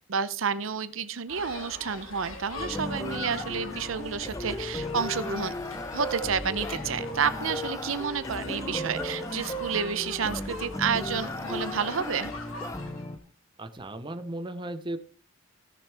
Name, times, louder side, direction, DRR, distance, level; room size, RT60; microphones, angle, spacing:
voice 1, 0.1-5.5 5.9-12.3, right 6 dB, 80° right, 14 dB, 0.7 m, -30 dB
sound 1, 1.3-13.1, left 2 dB, 90° left, 2.2 m, -42 dB
sound 2, 2.6-13.2, left 1 dB, 15° left, 0.7 m, -35 dB
voice 2, 13.6-15.0, right 1 dB, 25° right, 9 dB, 0.7 m, -36 dB
16.0 x 6.7 x 3.5 m, 0.40 s
head